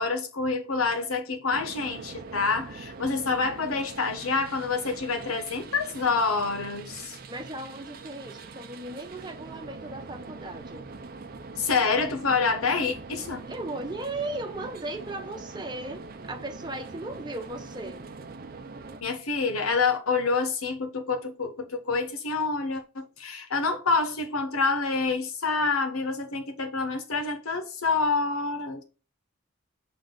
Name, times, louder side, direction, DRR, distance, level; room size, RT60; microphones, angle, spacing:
voice 1, 0.0-7.2 11.6-13.5 19.0-28.8, left 4 dB, 85° left, 1.2 m, -27 dB
sound 1, 1.5-19.0, right 3 dB, 45° right, 0.6 m, -43 dB
voice 2, 7.3-10.9 13.5-18.0, right 2 dB, 20° right, 1.0 m, -37 dB
6.9 x 3.8 x 3.8 m
head